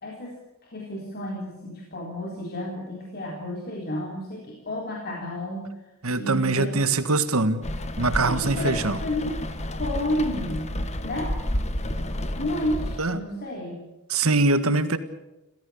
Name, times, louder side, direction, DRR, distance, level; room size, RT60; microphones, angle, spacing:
voice 1, 0.0-5.7 6.2-7.0 8.2-9.4 9.7-10.8 11.0-11.4 12.4-13.8, left 1 dB, 45° left, -1 dB, 3.8 m, -31 dB
voice 2, 6.0-7.6 8.0-9.0 13.0-13.2 14.1-15.0, right 3 dB, 75° right, 12 dB, 1.7 m, -23 dB
Rain, 7.6-13.0, left 1 dB, 30° left, 1.6 m, -30 dB
27.5 x 16.0 x 8.6 m, 1.0 s
head